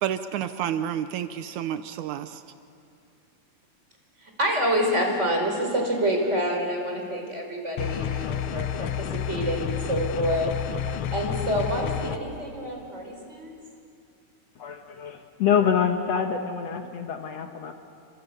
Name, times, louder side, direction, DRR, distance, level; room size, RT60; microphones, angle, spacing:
voice 1, 0.0-2.4, right 10 dB, 80° right, 10 dB, 2.2 m, -30 dB
voice 2, 4.2-10.5 10.8-13.5, equal, 20° right, 2 dB, 4.7 m, -27 dB
sound 1, 7.8-12.2, left 10 dB, 80° left, 1.1 m, -30 dB
voice 3, 14.6-17.7, left 7 dB, 65° left, 5 dB, 2.2 m, -26 dB
29.0 x 25.0 x 8.3 m, 2.5 s
omnidirectional pair, 3.5 m